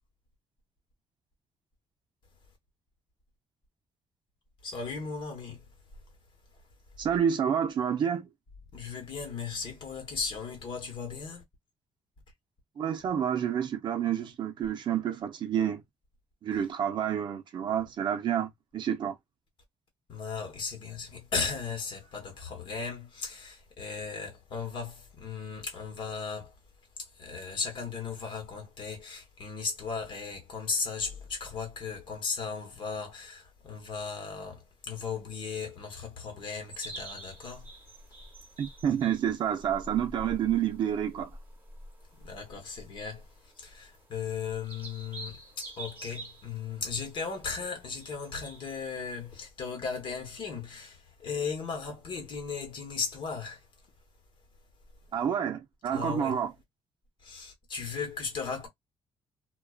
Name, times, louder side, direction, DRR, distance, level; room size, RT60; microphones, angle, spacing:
voice 1, 4.6-5.6 8.7-11.4 20.1-26.5 27.2-37.7 42.2-43.2 43.6-51.0 51.2-53.6 55.9-56.4 57.2-58.7, left 5 dB, 50° left, 1.1 m, -36 dB
voice 2, 7.0-8.3 12.8-15.8 16.4-19.2 38.6-41.4 55.1-56.5, right 9 dB, 45° right, 0.5 m, -29 dB
sound 1, 36.7-49.5, right 1 dB, 15° right, 1.0 m, -48 dB
2.3 x 2.3 x 2.3 m
cardioid pair, 155°, 11 cm